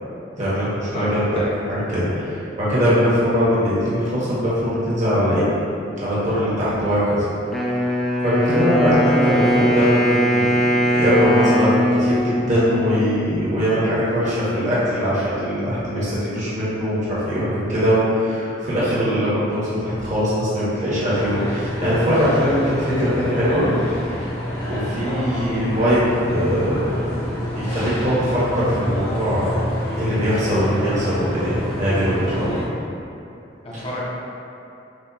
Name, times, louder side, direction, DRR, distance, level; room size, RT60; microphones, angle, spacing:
voice 1, 0.4-1.4 1.7-5.4 6.0-7.2 8.2-23.7 24.6-29.5 29.9-32.6 33.7-33.9, equal, 45° right, -10 dB, 1.1 m, -21 dB
voice 2, 0.9-1.5 33.6-34.0, equal, 35° left, -6 dB, 0.8 m, -31 dB
Wind instrument woodwind instrument, 7.5-13.5, equal, ahead, 0.4 m, -20 dB
sound 1, 21.1-32.6, equal, 55° left, 1.4 m, -27 dB
6.3 x 2.4 x 2.7 m, 2.7 s
head